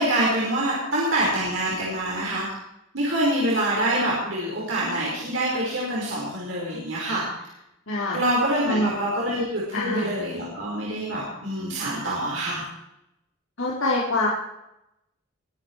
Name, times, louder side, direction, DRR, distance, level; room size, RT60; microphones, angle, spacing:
voice 1, 0.0-2.5 2.9-7.2 8.1-12.6, right 1 dB, 70° right, -5 dB, 5.4 m, -25 dB
voice 2, 7.9-8.2 8.7-8.9 9.7-10.1 13.6-14.3, left 2 dB, 75° left, -6 dB, 3.7 m, -24 dB
23.5 x 9.7 x 4.8 m, 0.84 s
head